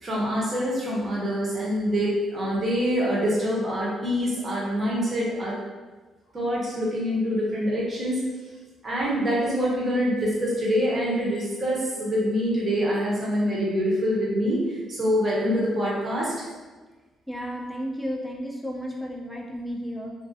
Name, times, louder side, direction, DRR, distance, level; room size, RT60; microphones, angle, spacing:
voice 1, 0.0-5.6 6.3-8.2 8.8-16.3, equal, 40° right, -5 dB, 0.8 m, -25 dB
voice 2, 17.3-20.1, equal, 5° right, -1 dB, 0.4 m, -33 dB
2.4 x 2.2 x 2.6 m, 1.3 s
cardioid pair, 90°, 0 cm